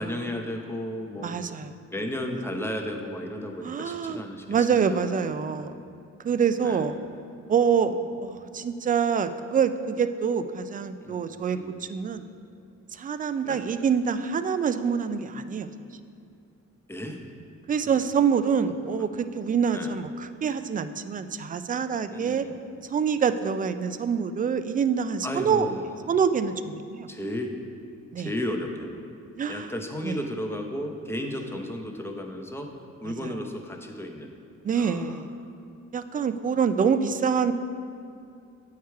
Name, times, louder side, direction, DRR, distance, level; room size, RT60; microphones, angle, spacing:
voice 1, 0.0-1.3 1.9-5.6 6.6-6.9 7.8-8.1 11.0-11.2 11.5-11.8 13.4-13.6 16.9-17.2 17.8-18.0 19.0-19.1 19.7-19.9 22.1-22.6 25.2-26.0 27.1-27.5 28.2-29.0 29.4-32.7 33.0-34.3 34.7-35.2, left 1 dB, 10° left, 3 dB, 0.8 m, -34 dB
voice 2, 1.2-1.7 3.6-4.2 4.5-5.8 6.2-7.0 7.5-7.9 8.2-12.2 12.9-15.7 17.7-22.4 22.9-25.7 26.1-27.1 28.1-28.3 29.4-29.7 30.0-30.2 33.1-33.3 34.6-35.3 35.9-37.5, right 6 dB, 30° right, 11 dB, 0.3 m, -26 dB
8.2 x 4.8 x 4.6 m, 2.5 s
cardioid pair, 90°, 30 cm